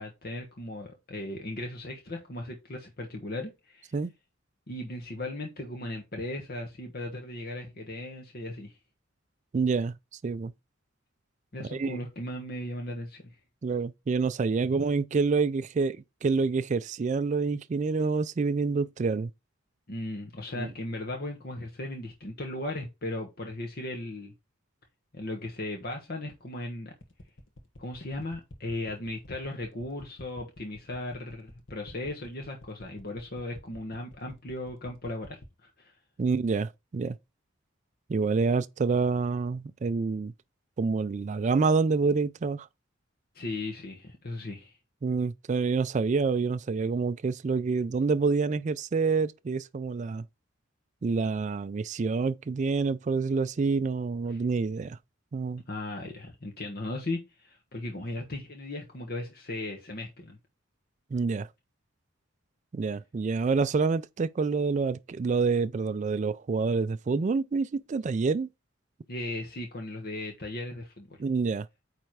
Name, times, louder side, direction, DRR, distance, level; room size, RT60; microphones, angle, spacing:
voice 1, 0.0-3.9 4.7-8.7 11.5-13.4 19.9-24.3 25.1-26.9 27.8-35.9 43.3-44.7 54.3-54.4 55.7-60.4 69.1-71.1, left 1 dB, 50° left, 1.3 m, -37 dB
voice 2, 9.5-9.9 10.2-10.5 11.7-12.0 13.6-19.3 20.6-20.7 36.2-37.2 38.1-40.3 40.8-42.7 45.0-50.2 51.0-55.0 55.3-55.6 61.1-61.5 62.7-68.5 71.2-71.7, right 4 dB, 40° right, 0.3 m, -27 dB
sound 1, 27.0-35.6, left 1 dB, 70° left, 1.3 m, -49 dB
8.8 x 3.3 x 4.7 m
head